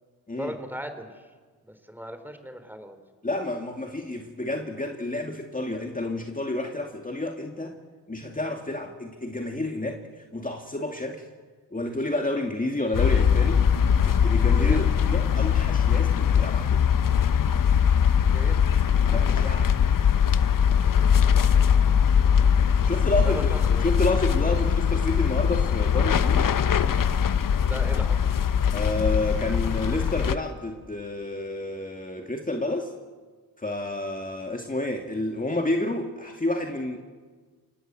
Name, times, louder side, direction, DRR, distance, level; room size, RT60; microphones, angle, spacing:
voice 1, 0.4-1.3 1.6-3.0 14.6-14.9 18.2-18.7 23.2-23.7 24.5-24.7 27.7-28.2, equal, 5° right, 8 dB, 3.8 m, -37 dB
voice 2, 3.2-7.8 8.1-11.2 11.7-13.7 14.1-16.8 18.7-18.8 19.1-19.7 22.7-23.5 23.8-26.5 28.7-32.9 33.6-37.0, left 2 dB, 20° left, 2 dB, 2.3 m, -30 dB
sound 1, 12.9-30.4, left 7 dB, 55° left, 1.1 m, -21 dB
28.0 x 18.5 x 7.7 m, 1.5 s
cardioid pair, 60°, 39 cm